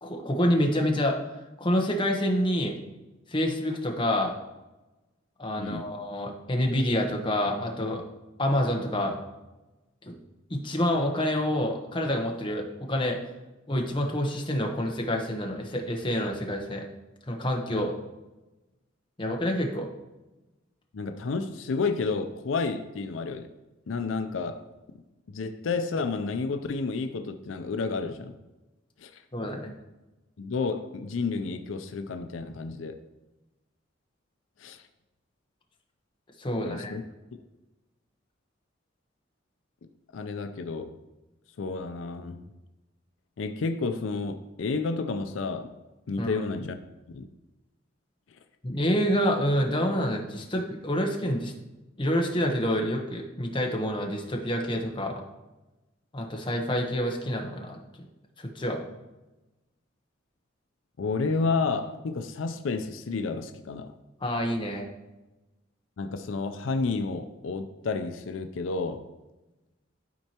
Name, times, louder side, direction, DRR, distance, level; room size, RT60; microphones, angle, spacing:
voice 1, 0.0-1.2 1.6-2.7 3.3-4.3 5.4-8.0 8.4-9.2 10.1-10.2 10.5-13.2 13.7-16.8 17.3-17.9 19.2-19.9 29.3-29.7 36.4-36.9 46.2-46.4 48.6-51.5 52.0-55.2 56.1-57.8 58.4-58.8 64.2-64.9, equal, 25° left, 1 dB, 0.9 m, -27 dB
voice 2, 5.6-5.9 17.7-17.9 20.9-23.5 23.9-24.6 25.3-28.4 29.0-29.1 30.4-33.0 34.6-34.8 36.6-37.0 40.1-41.0 41.6-42.5 43.4-45.7 46.1-46.8 47.1-47.3 61.0-63.9 66.0-69.0, left 4 dB, 85° left, 8 dB, 0.5 m, -31 dB
12.0 x 4.4 x 2.9 m, 1.1 s
head